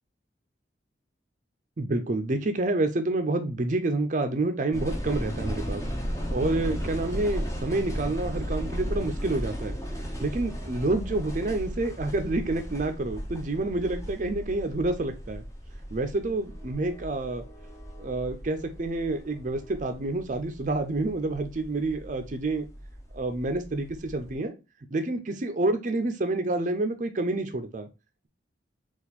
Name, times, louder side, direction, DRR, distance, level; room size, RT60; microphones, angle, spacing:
voice 1, 1.8-5.8 6.3-9.8 10.2-15.4 15.9-17.4 18.0-22.7 23.1-24.5 24.9-27.9, right 2 dB, 40° right, 7 dB, 0.5 m, -28 dB
sound 1, 4.7-24.3, equal, 15° left, 0.6 m, -36 dB
4.2 x 2.4 x 4.0 m, 0.27 s
head